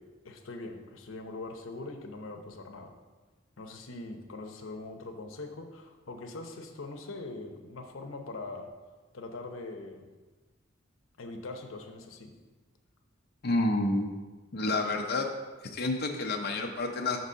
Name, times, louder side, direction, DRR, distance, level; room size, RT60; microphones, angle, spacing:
voice 1, 0.0-2.9 3.6-8.7 9.1-10.1 11.2-12.3, left 2 dB, 90° left, 4 dB, 0.8 m, -42 dB
voice 2, 13.4-14.1 14.5-15.3 15.6-17.2, left 2 dB, 50° left, 1 dB, 0.6 m, -29 dB
6.1 x 4.1 x 6.2 m, 1.3 s
head